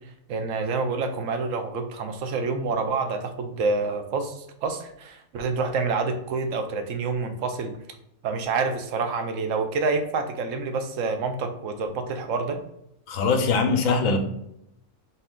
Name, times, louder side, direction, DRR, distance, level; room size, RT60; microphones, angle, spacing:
voice 1, 0.3-7.7 8.2-12.6, right 4 dB, 75° right, 6 dB, 0.9 m, -27 dB
voice 2, 13.1-14.2, left 4 dB, 75° left, 6 dB, 1.0 m, -22 dB
4.1 x 2.6 x 3.6 m, 0.77 s
omnidirectional pair, 1.4 m